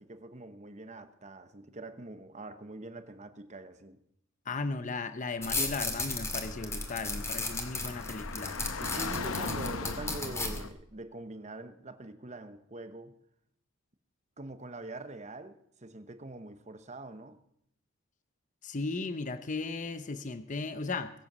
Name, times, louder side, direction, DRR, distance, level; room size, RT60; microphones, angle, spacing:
voice 1, 0.0-4.0 8.8-13.2 14.4-17.4, right 2 dB, 35° right, 1.0 m, -44 dB
voice 2, 4.5-8.6 18.6-21.1, left 3 dB, 35° left, 0.7 m, -36 dB
sound 1, 5.4-10.6, left 2 dB, 15° left, 2.2 m, -35 dB
Car / Traffic noise roadway noise, 5.6-10.7, left 4 dB, 85° left, 0.9 m, -39 dB
21.5 x 8.4 x 6.2 m
head